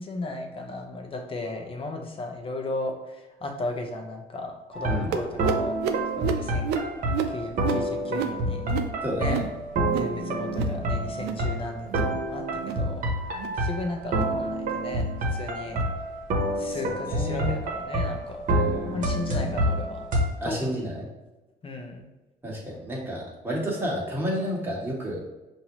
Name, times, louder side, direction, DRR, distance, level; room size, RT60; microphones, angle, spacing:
voice 1, 0.0-3.2 3.4-5.8 6.2-6.7 7.3-8.6 9.2-13.0 13.5-15.0 15.3-15.8 16.6-18.4 18.9-20.1 20.4-20.6 21.6-22.0, left 2 dB, 30° left, 3 dB, 0.8 m, -35 dB
sound 1, 4.7-20.2, right 1 dB, 50° right, 1.0 m, -28 dB
sound 2, 5.1-10.2 10.4-10.8 11.1-11.5 11.8-12.2 12.5-12.9 13.3-13.6 14.1-14.4 14.9-15.1 15.7-15.9 16.5-16.7 17.4-17.5 18.3-18.4, right 7 dB, 80° right, 0.4 m, -32 dB
voice 2, 9.0-9.4 16.8-17.5 18.5-19.0 20.4-21.1 22.4-25.2, equal, 15° right, -4 dB, 1.4 m, -31 dB
5.6 x 2.7 x 3.0 m, 1.1 s
cardioid pair, 110°, 17 cm